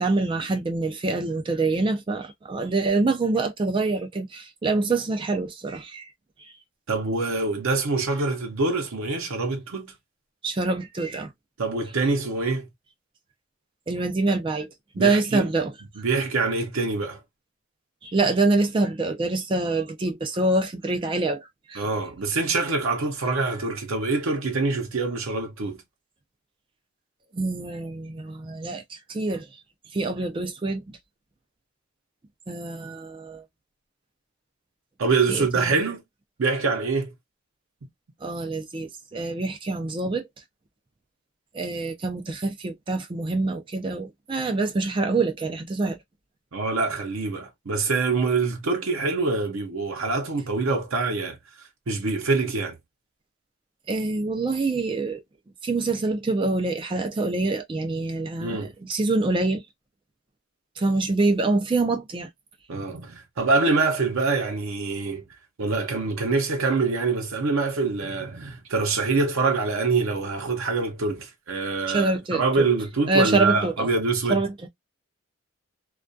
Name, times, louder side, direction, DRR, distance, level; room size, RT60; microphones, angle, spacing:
voice 1, 0.0-6.1 10.4-11.3 13.9-14.7 15.0-15.7 18.0-21.8 27.3-29.5 29.9-30.8 32.5-33.4 35.3-35.8 38.2-40.3 41.5-46.0 53.9-55.2 55.6-59.6 60.8-62.3 71.9-72.4 73.1-73.9 74.3-74.5, right 3 dB, 25° right, 0.3 m, -25 dB
voice 2, 6.9-9.9 11.6-12.7 14.9-15.5 16.0-17.2 21.7-25.8 35.0-36.0 36.4-37.1 46.5-51.4 51.9-52.8 58.4-58.7 62.7-65.2 65.6-74.4, right 3 dB, 75° right, 0.6 m, -25 dB
2.2 x 2.2 x 2.5 m
head